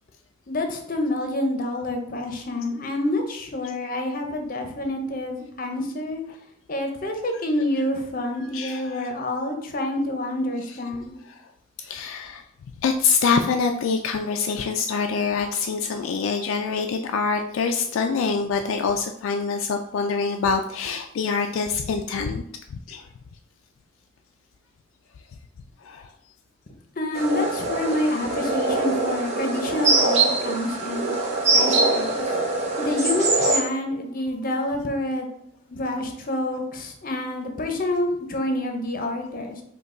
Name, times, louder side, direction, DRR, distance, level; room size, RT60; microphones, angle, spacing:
voice 1, 0.5-6.2 6.7-11.2 27.0-31.1 31.5-32.4 32.8-35.3 35.7-39.6, left 1 dB, 40° left, 3 dB, 0.7 m, -27 dB
voice 2, 8.3-9.1 11.3-11.4 11.8-12.4 12.8-22.4 22.7-23.0 25.8-26.1, left 5 dB, 75° left, 4 dB, 0.3 m, -25 dB
sound 1, 27.2-33.6, right 3 dB, 35° right, 0.8 m, -23 dB
5.2 x 2.3 x 3.7 m, 0.71 s
head